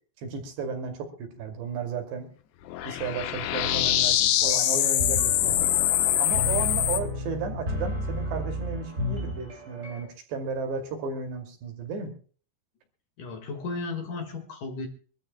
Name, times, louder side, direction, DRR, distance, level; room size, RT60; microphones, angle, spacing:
voice 1, 0.2-2.3 2.9-5.7 6.2-12.1, right 5 dB, 80° right, 4 dB, 4.6 m, -34 dB
sound 1, 2.7-7.0, left 12 dB, 80° left, 3.2 m, -24 dB
sound 2, 4.4-10.0, left 1 dB, 15° right, 4.4 m, -33 dB
voice 2, 13.2-14.9, left 3 dB, 55° left, 5 dB, 3.0 m, -34 dB
25.5 x 13.0 x 2.2 m, 0.41 s
omnidirectional pair, 4.9 m